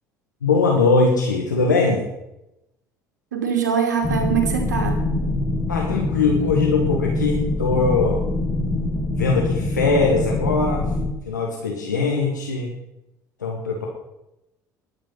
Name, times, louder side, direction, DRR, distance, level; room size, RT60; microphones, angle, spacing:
voice 1, 0.4-2.1 5.7-8.2 9.1-10.9 11.3-12.7 13.4-13.9, left 3 dB, 80° left, -1 dB, 2.0 m, -21 dB
voice 2, 3.3-5.0, right 7 dB, 75° right, 4 dB, 2.7 m, -22 dB
sound 1, 4.0-11.1, left 2 dB, 20° left, 2.2 m, -24 dB
21.5 x 8.8 x 5.7 m, 0.89 s
figure-of-eight pair, 60°, 10 cm